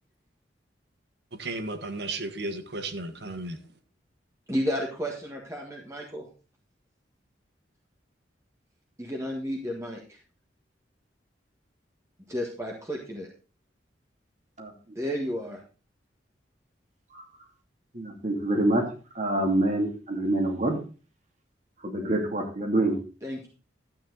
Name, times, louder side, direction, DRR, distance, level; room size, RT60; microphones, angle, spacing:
voice 1, 1.4-3.6, right 2 dB, 65° right, 1.5 m, -34 dB
voice 2, 4.5-6.2 9.0-10.0 12.3-13.3 14.9-15.6 23.2-23.5, equal, 15° right, 1.6 m, -32 dB
voice 3, 17.9-18.8 19.1-20.8 21.8-23.0, right 1 dB, 40° right, 2.6 m, -26 dB
12.5 x 8.8 x 3.9 m
head